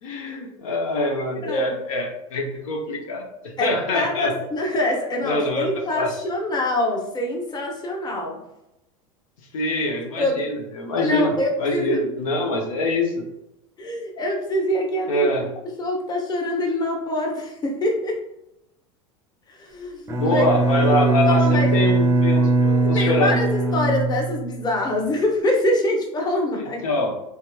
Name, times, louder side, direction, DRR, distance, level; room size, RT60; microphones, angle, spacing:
voice 1, 0.0-4.3 5.2-6.1 9.5-11.3 11.6-13.1 15.1-15.5 20.2-23.4 26.6-27.1, left 1 dB, 80° left, 1 dB, 0.7 m, -24 dB
voice 2, 1.4-1.8 3.6-8.4 10.2-10.5 11.0-12.0 13.8-15.3 15.8-18.2 19.5-20.4 20.8-21.7 22.9-26.8, left 1 dB, 25° left, 0 dB, 0.8 m, -25 dB
Bowed string instrument, 20.1-24.8, right 3 dB, 15° right, 0.5 m, -20 dB
3.4 x 2.8 x 2.2 m, 0.86 s
hypercardioid pair, 100°, 17 cm